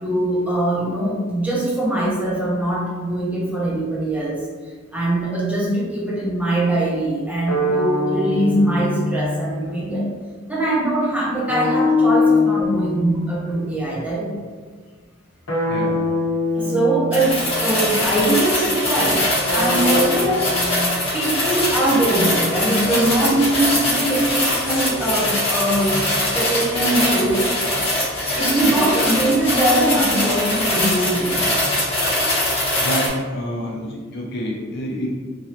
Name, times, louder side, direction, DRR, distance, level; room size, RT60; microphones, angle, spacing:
voice 1, 0.0-4.4 4.9-10.1 10.5-14.3 16.5-19.2 19.5-20.6 21.1-26.0 26.3-27.5 28.4-31.4, right 1 dB, 10° right, -6 dB, 0.7 m, -21 dB
sound 1, 7.5-9.8 11.5-13.8 15.5-17.7 19.5-20.9, left 3 dB, 85° left, 0.8 m, -22 dB
voice 2, 15.7-16.1 24.0-24.2 32.7-35.1, equal, 55° left, -3 dB, 0.6 m, -28 dB
sound 2, 17.1-33.1, left 1 dB, 30° left, 1.0 m, -22 dB
3.0 x 2.6 x 2.8 m, 1.5 s
head